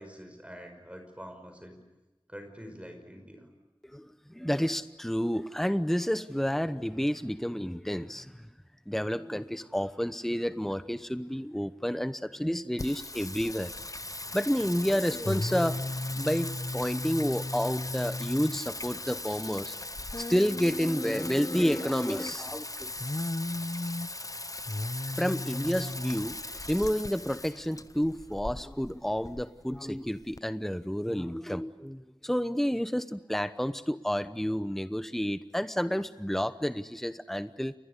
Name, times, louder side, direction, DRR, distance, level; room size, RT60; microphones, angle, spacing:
voice 1, 0.0-1.8 2.3-3.5, equal, 15° right, 5 dB, 5.5 m, -46 dB
voice 2, 3.9-8.3 8.9-13.7 14.3-15.8 16.2-16.5 16.7-19.7 20.2-22.9 25.2-26.4 26.7-37.7, equal, 5° left, 12 dB, 0.9 m, -30 dB
Singing, 12.8-30.4, left 2 dB, 40° left, 0.8 m, -36 dB
29.0 x 21.0 x 8.3 m, 1.1 s
wide cardioid pair, 45°, 9 cm